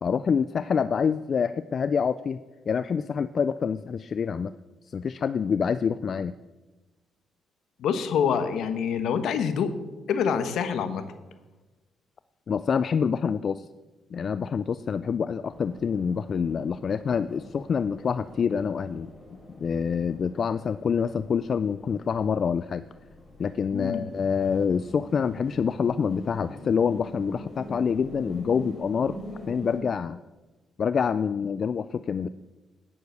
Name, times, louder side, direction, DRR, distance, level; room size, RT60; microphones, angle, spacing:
voice 1, 0.0-2.4 2.7-4.5 4.9-6.3 12.5-13.7 14.1-19.1 19.6-22.8 23.4-29.2 29.5-30.2 30.8-32.3, left 6 dB, 50° left, 14 dB, 0.3 m, -26 dB
voice 2, 7.8-9.7 10.1-11.1 23.7-24.1, left 7 dB, 75° left, 10 dB, 1.1 m, -26 dB
sound 1, 15.4-29.8, left 1 dB, 25° left, 4.8 m, -44 dB
9.6 x 9.4 x 6.7 m, 1.1 s
cardioid pair, 90°, 0 cm